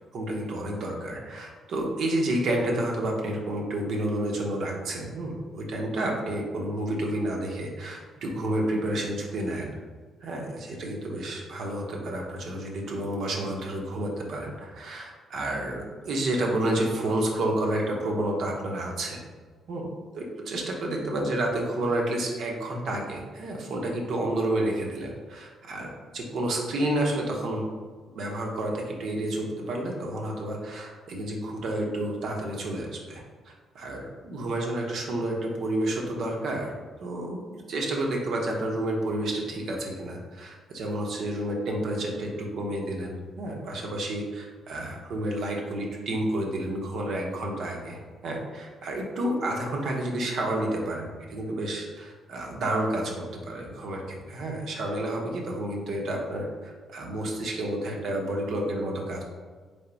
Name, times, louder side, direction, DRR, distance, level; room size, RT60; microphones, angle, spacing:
voice 1, 0.1-9.7 10.2-19.2 19.7-19.9 20.1-27.7 28.1-36.7 37.0-37.4 37.7-59.2, right 1 dB, 70° right, 0 dB, 0.9 m, -30 dB
3.8 x 3.5 x 3.9 m, 1.5 s
cardioid pair, 90°, 0 cm